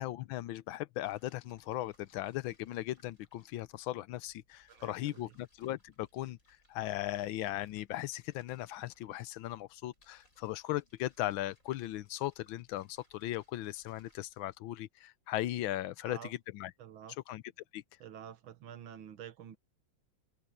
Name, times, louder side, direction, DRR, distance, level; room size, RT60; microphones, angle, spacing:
voice 1, 0.0-6.4 6.7-16.7 17.3-17.4 17.7-17.8, left 15 dB, 85° left, 1.5 m, -38 dB
sound 1, 1.0-14.6, left 1 dB, 40° left, 8.3 m, -70 dB
voice 2, 4.7-5.4 16.0-16.3 16.8-17.2 18.0-19.6, right 9 dB, 80° right, 1.9 m, -49 dB
omnidirectional pair, 2.1 m